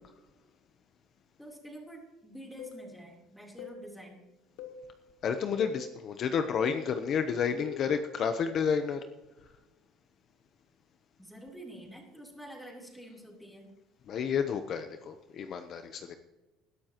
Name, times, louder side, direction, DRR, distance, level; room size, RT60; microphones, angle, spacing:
voice 1, 1.4-4.2 11.2-13.7, right 1 dB, 5° left, 0 dB, 3.4 m, -48 dB
sound 1, 2.6-2.8 3.6-3.8 4.6-4.8 5.6-5.8 6.6-6.8 7.6-7.9, left 8 dB, 80° left, 1.2 m, -43 dB
voice 2, 5.2-9.0 14.1-16.1, left 6 dB, 45° left, 8 dB, 0.8 m, -30 dB
20.0 x 11.5 x 3.0 m, 1.1 s
cardioid pair, 135°, 0 cm